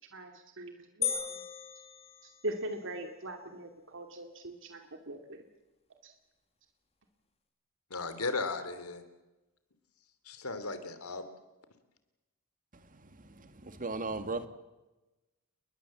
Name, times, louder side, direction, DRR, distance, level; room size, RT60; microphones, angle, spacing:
voice 1, 0.1-1.4 2.2-5.4 6.0-6.1, right 1 dB, 60° right, 5 dB, 2.5 m, -41 dB
sound 1, 1.0-2.8, left 7 dB, 30° left, 2.2 m, -36 dB
voice 2, 7.9-9.0 10.2-11.2, left 3 dB, 75° left, 11 dB, 3.1 m, -36 dB
voice 3, 13.2-14.5, right 3 dB, 40° right, 10 dB, 1.9 m, -37 dB
29.5 x 21.5 x 7.6 m, 1.1 s
head